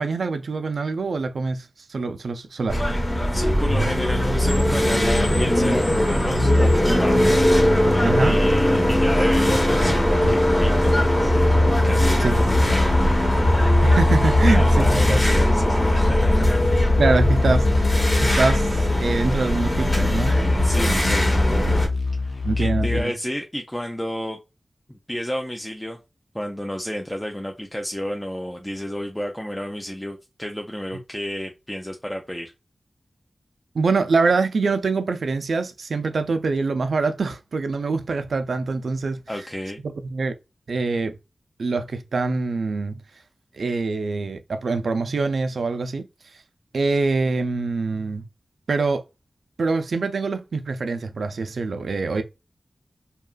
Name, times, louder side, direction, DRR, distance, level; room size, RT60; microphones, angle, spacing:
voice 1, 0.0-2.8 8.0-8.4 12.2-12.4 13.8-15.2 17.0-20.4 22.4-23.1 33.7-39.2 40.0-40.3 40.7-41.1 41.6-43.0 43.6-46.1 46.7-48.2 48.7-49.0 49.6-52.2, right 3 dB, 90° right, 0.4 m, -24 dB
sound 1, 2.7-21.9, left 1 dB, 25° left, 1.1 m, -19 dB
voice 2, 3.3-7.3 8.2-11.0 11.8-13.1 14.4-16.7 20.6-21.8 22.2-24.4 24.9-26.0 26.3-32.5 39.3-39.8, equal, 10° left, 0.4 m, -31 dB
sound 2, 12.4-23.0, left 3 dB, 85° left, 0.5 m, -25 dB
2.8 x 2.3 x 2.3 m
wide cardioid pair, 80°, 0 cm